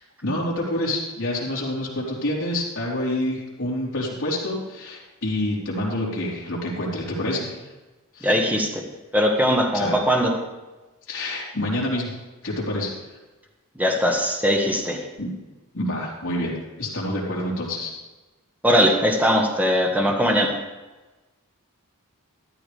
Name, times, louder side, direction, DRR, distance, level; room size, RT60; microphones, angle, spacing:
voice 1, 0.2-7.6 8.1-8.3 9.7-10.0 11.1-12.2 12.4-12.9 15.2-15.3 15.7-17.9, left 1 dB, 60° left, -4 dB, 3.8 m, -27 dB
voice 2, 8.2-8.8 9.1-10.3 13.8-15.0 18.6-20.5, equal, 5° right, 0 dB, 1.5 m, -20 dB
13.5 x 12.0 x 3.5 m, 1.2 s
head